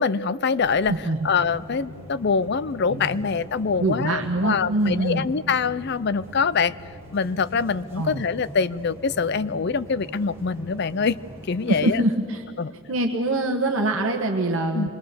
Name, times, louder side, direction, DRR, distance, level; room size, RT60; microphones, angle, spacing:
voice 1, 0.0-0.9 1.2-6.7 7.1-11.2 11.5-12.0 12.6-12.7 14.7-14.9, left 5 dB, 50° left, 16 dB, 0.5 m, -24 dB
sound 1, 0.6-11.8, equal, 15° right, 3.5 m, -43 dB
voice 2, 3.8-5.2 8.0-8.2 11.7-12.4 12.9-14.9, right 1 dB, 65° right, 2 dB, 1.3 m, -24 dB
26.5 x 22.0 x 6.8 m, 2.4 s
head